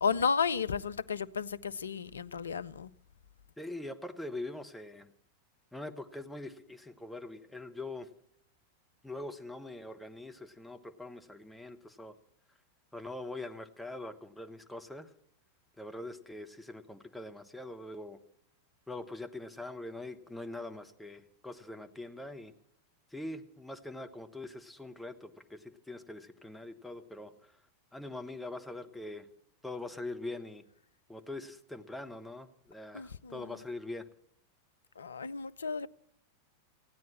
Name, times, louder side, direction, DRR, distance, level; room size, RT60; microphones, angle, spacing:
voice 1, 0.0-2.9 32.9-33.6 35.0-35.9, left 6 dB, 70° left, 0.5 m, -33 dB
voice 2, 3.6-5.1 5.7-8.1 9.0-12.1 12.9-15.1 15.8-18.2 18.9-22.5 23.1-27.6 27.9-29.3 29.6-30.6 31.1-34.1, left 2 dB, 5° left, 1.2 m, -43 dB
16.0 x 9.3 x 7.5 m
figure-of-eight pair, 90°, 0 cm